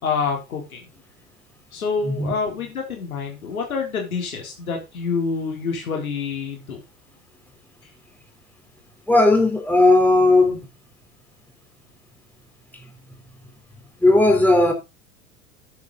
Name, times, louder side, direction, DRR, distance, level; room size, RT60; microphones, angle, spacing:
voice 1, 0.0-0.8 1.7-6.8, left 5 dB, 75° left, 3.6 m, -27 dB
voice 2, 2.0-2.3 9.1-10.7 14.0-14.7, left 2 dB, 5° left, 3.7 m, -16 dB
10.5 x 8.1 x 3.9 m
figure-of-eight pair, 80°, 42 cm